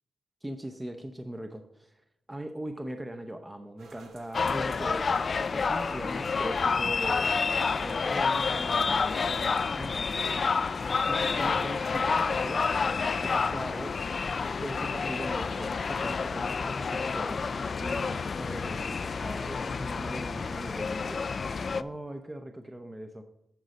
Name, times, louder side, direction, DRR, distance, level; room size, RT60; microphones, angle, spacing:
voice 1, 0.4-1.9 2.3-7.3 7.8-9.2 9.8-10.0 11.1-12.8 13.2-14.0 14.6-17.5 17.8-21.2 21.8-23.2, right 1 dB, 15° right, 6 dB, 0.6 m, -40 dB
sound 1, 3.8-11.9, right 4 dB, 85° right, 1.0 m, -53 dB
sound 2, 4.3-21.8, left 5 dB, 50° left, 0.3 m, -29 dB
10.5 x 4.0 x 5.1 m, 0.87 s
cardioid pair, 75°, 0 cm